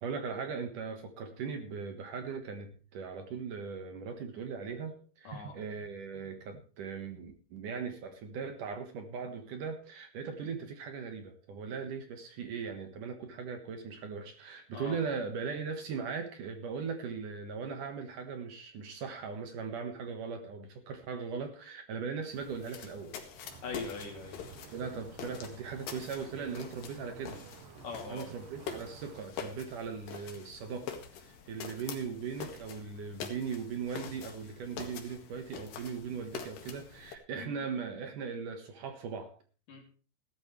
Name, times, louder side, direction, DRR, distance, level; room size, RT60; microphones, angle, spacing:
voice 1, 0.0-23.2 24.7-27.4 28.1-39.3, right 5 dB, 60° right, 7 dB, 2.4 m, -39 dB
voice 2, 5.3-5.6 14.7-15.0 23.6-24.5 27.8-28.3 37.4-37.6 39.7-39.8, left 4 dB, 50° left, 3 dB, 4.1 m, -41 dB
sound 1, 22.3-37.2, left 7 dB, 70° left, 3.8 m, -45 dB
sound 2, 23.4-29.2, right 10 dB, 75° right, 2.0 m, -53 dB
16.5 x 13.0 x 3.2 m, 0.38 s
omnidirectional pair, 5.1 m